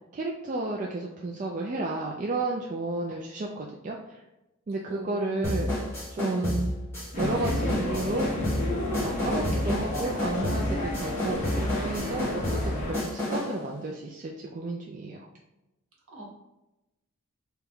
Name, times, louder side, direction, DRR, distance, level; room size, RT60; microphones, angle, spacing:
voice 1, 0.1-4.2 4.7-5.8 6.1-6.7 7.2-8.3 9.0-15.3, right 2 dB, 35° right, -1 dB, 0.3 m, -32 dB
voice 2, 4.9-5.6 16.1-16.3, right 1 dB, 65° right, -3 dB, 1.2 m, -40 dB
sound 1, 5.4-13.6, left 1 dB, 10° left, 1.2 m, -30 dB
sound 2, 7.1-12.9, left 1 dB, 35° left, 1.1 m, -32 dB
3.3 x 2.9 x 3.5 m, 0.95 s
head